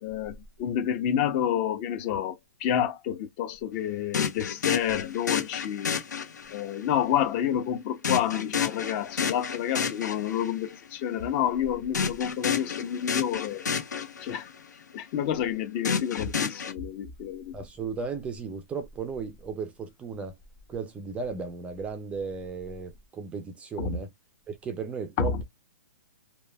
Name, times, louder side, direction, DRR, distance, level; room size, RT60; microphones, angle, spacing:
voice 1, 0.0-6.0 6.5-13.6 14.2-14.5 14.9-17.5 23.8-24.0 25.2-25.4, left 9 dB, 35° left, 0.7 m, -29 dB
sound 1, 4.1-6.8 8.0-10.7 11.9-14.6 15.8-16.7, left 6 dB, 85° left, 0.9 m, -30 dB
voice 2, 17.5-20.3 20.7-24.1 24.5-25.4, right 5 dB, 15° right, 0.4 m, -35 dB
3.1 x 2.2 x 2.2 m
hypercardioid pair, 140°, 9 cm